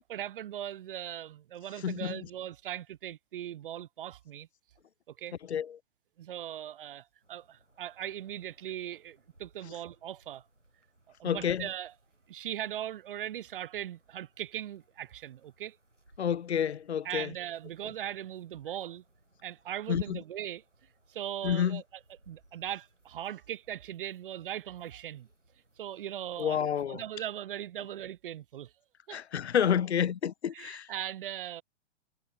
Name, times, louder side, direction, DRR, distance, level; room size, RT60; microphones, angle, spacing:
voice 1, 0.1-4.5 5.1-5.3 6.2-10.4 11.2-11.9 12.3-15.8 17.0-19.0 19.4-20.6 21.1-21.8 22.3-25.3 25.8-26.6 26.9-28.7 29.1-29.2 30.5-31.6, right 11 dB, 50° right, 0.6 m, -39 dB
voice 2, 1.8-2.2 5.5-5.8 11.2-11.7 16.2-17.3 19.9-20.2 21.4-21.8 26.4-27.0 29.1-30.9, left 8 dB, 65° left, 0.8 m, -29 dB
sound 1, 7.2-26.9, right 1 dB, 85° right, 6.2 m, -67 dB
figure-of-eight pair, 110°, 36 cm